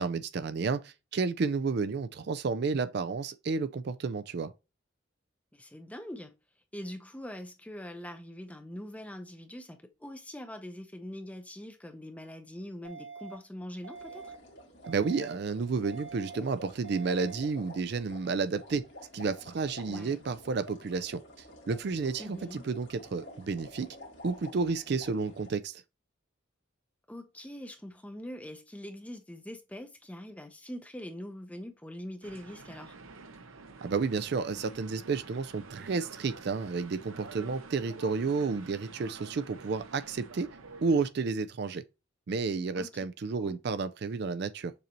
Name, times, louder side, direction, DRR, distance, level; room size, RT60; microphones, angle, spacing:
voice 1, 0.0-4.5 14.8-18.8 19.1-21.2 21.7-23.9 24.2-25.8 33.8-40.5 40.8-41.8 42.3-44.7, right 4 dB, 50° right, 0.4 m, -31 dB
voice 2, 5.5-6.3 6.7-14.3 19.8-20.2 22.2-22.6 27.1-33.0 42.8-43.0 43.4-43.6, equal, 5° left, 0.6 m, -43 dB
sound 1, 12.8-13.3 13.8-14.3 14.8-15.3 15.8-16.3 16.8-17.3, right 5 dB, 70° right, 1.4 m, -45 dB
sound 2, 13.9-25.5, left 1 dB, 60° left, 1.8 m, -50 dB
sound 3, 32.2-41.1, right 3 dB, 90° right, 0.8 m, -48 dB
6.8 x 2.7 x 2.9 m
head